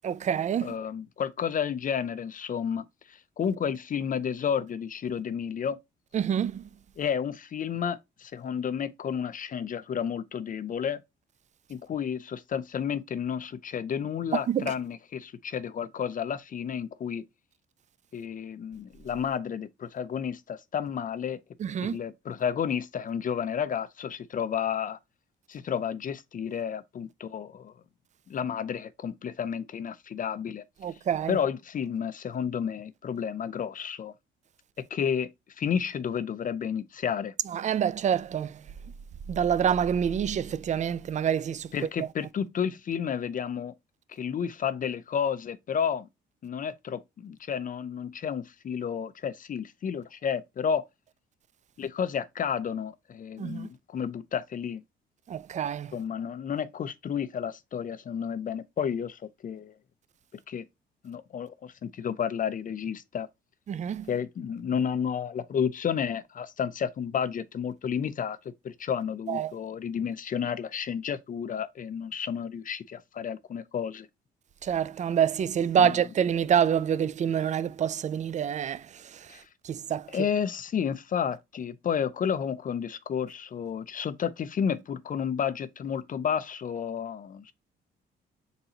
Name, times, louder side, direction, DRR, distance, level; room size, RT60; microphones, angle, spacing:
voice 1, 0.0-0.7 6.1-6.6 14.3-14.7 21.6-22.0 30.8-31.4 37.5-38.6 39.3-41.7 42.0-42.1 53.4-53.7 55.3-55.9 63.7-64.1 69.3-69.5 74.6-79.3 79.6-80.1, right 8 dB, 35° right, 0.4 m, -27 dB
voice 2, 0.6-5.8 7.0-11.0 11.7-17.2 18.1-21.4 21.8-25.0 25.5-27.7 28.3-30.6 31.3-34.1 34.9-35.3 35.6-37.3 41.7-43.7 44.1-46.1 46.4-50.8 51.8-54.8 55.9-59.7 60.5-60.6 61.0-63.3 64.1-68.4 68.6-74.1 75.8-76.0 79.3-79.5 80.1-87.5, left 7 dB, 45° left, 0.5 m, -31 dB
4.0 x 3.9 x 2.8 m
cardioid pair, 90°, 20 cm